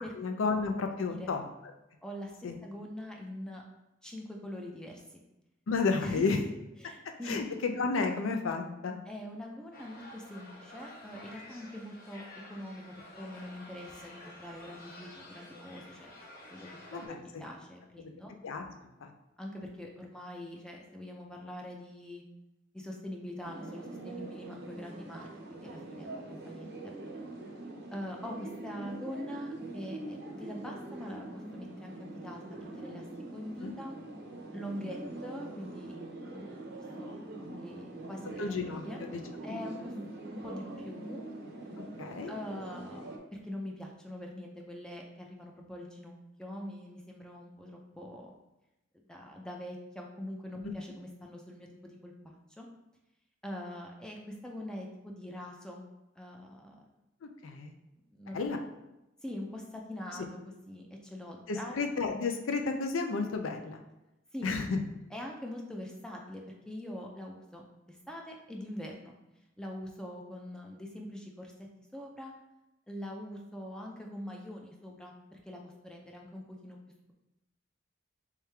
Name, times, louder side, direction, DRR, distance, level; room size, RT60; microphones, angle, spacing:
voice 1, 0.2-1.4 2.4-2.6 5.7-6.4 7.3-9.0 16.9-17.4 18.4-18.6 19.0-19.1 33.6-33.7 38.4-39.2 39.5-39.6 42.0-42.3 57.2-57.7 58.3-58.6 60.1-60.3 61.5-63.8 64.4-64.8, left 4 dB, 80° left, 5 dB, 0.5 m, -32 dB
voice 2, 2.0-2.3 2.6-3.6 4.0-5.2 6.0-6.4 6.8-7.4 9.1-12.2 12.5-16.1 16.5-18.3 19.4-22.2 22.7-26.9 27.9-32.4 32.8-33.0 33.3-34.0 34.5-36.0 36.3-36.5 37.0-37.1 37.6-39.0 39.4-39.9 40.3-41.2 42.3-48.3 49.1-52.7 53.4-55.8 56.2-56.8 58.1-58.4 59.2-60.4 60.7-61.8 64.3-64.5 65.1-67.6 67.9-69.1 69.6-71.5 71.9-72.3 72.9-76.8, left 1 dB, 5° left, 0 dB, 0.4 m, -43 dB
sound 1, 9.7-17.1, left 1 dB, 50° left, 0.8 m, -50 dB
sound 2, 23.4-43.2, right 2 dB, 55° right, 0.6 m, -43 dB
3.5 x 3.2 x 3.3 m, 0.95 s
head